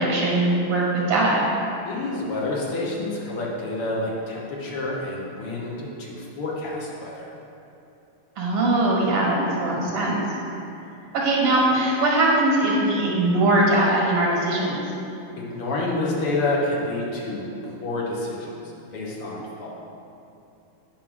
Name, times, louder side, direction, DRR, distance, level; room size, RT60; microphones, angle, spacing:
voice 1, 0.0-1.4 8.4-10.2 11.1-14.8, right 2 dB, 85° right, -4 dB, 2.5 m, -21 dB
voice 2, 1.9-7.3 9.7-9.9 15.4-19.7, left 2 dB, 85° left, -3 dB, 2.2 m, -29 dB
9.4 x 6.1 x 3.8 m, 2.8 s
omnidirectional pair, 2.4 m